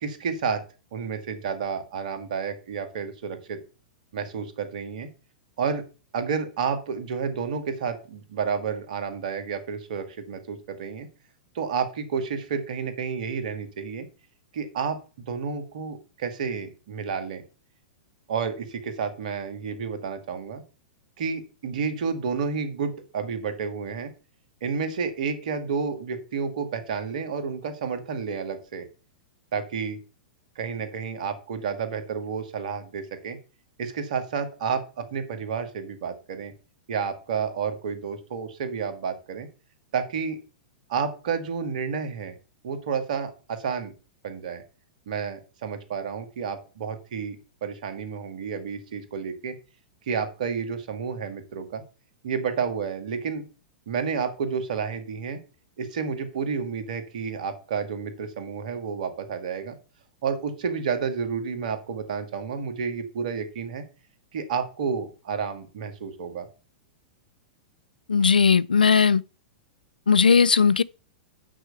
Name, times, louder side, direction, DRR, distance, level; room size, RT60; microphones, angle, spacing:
voice 1, 0.0-0.6 0.9-3.6 4.1-5.1 5.6-5.8 6.1-11.1 11.5-14.1 14.5-15.0 15.3-17.4 18.3-20.6 21.2-24.1 24.6-28.9 29.5-30.0 30.6-33.4 33.8-36.5 36.9-39.5 39.9-40.4 40.9-42.4 42.6-43.9 44.2-44.6 45.1-49.5 50.1-51.8 52.2-53.4 53.9-55.4 55.8-59.8 60.2-63.8 64.3-66.5, right 6 dB, 60° right, 2.0 m, -30 dB
voice 2, 68.1-69.2 70.1-70.8, left 5 dB, 85° left, 0.4 m, -18 dB
6.5 x 6.3 x 6.8 m
figure-of-eight pair, 100°, 5 cm